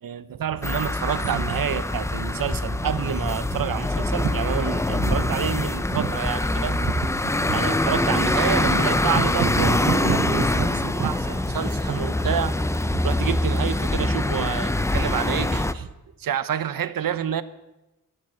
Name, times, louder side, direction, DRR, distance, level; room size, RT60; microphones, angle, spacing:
voice 1, 0.0-12.5 12.9-15.9 16.2-17.4, right 9 dB, 70° right, 15 dB, 0.9 m, -28 dB
sound 1, 0.6-15.7, left 2 dB, 10° left, 0.5 m, -24 dB
12.5 x 12.0 x 8.8 m, 0.99 s
wide cardioid pair, 170°, 35 cm